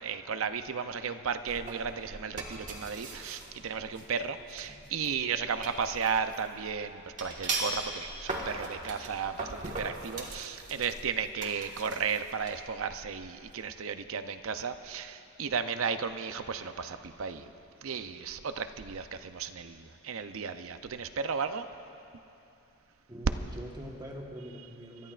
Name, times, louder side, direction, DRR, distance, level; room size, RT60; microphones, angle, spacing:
voice 1, 0.0-17.4 17.8-21.7, right 6 dB, 65° right, 9 dB, 0.6 m, -34 dB
sound 1, 1.5-13.5, right 2 dB, 35° right, 1.5 m, -40 dB
voice 2, 23.1-25.1, right 1 dB, 20° right, 0 dB, 1.3 m, -43 dB
27.0 x 13.0 x 2.5 m, 2.7 s
head